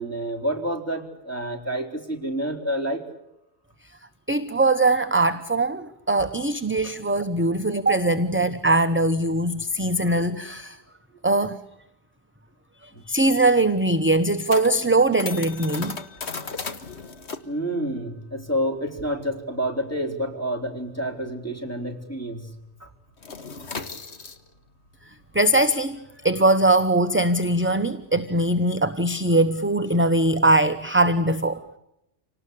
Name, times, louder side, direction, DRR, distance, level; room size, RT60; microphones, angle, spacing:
voice 1, 0.0-3.0 6.8-6.9 9.8-9.9 12.9-13.0 17.4-22.5 22.8-22.9, equal, 10° left, 3 dB, 4.1 m, -29 dB
voice 2, 4.3-10.8 11.2-11.6 13.1-15.9 25.3-26.0 26.2-31.6, right 2 dB, 10° right, 9 dB, 0.8 m, -21 dB
sound 1, 13.0-21.9 22.2-22.5 22.8-28.5, left 4 dB, 65° left, 1.9 m, -38 dB
27.0 x 19.0 x 8.5 m, 0.86 s
omnidirectional pair, 1.2 m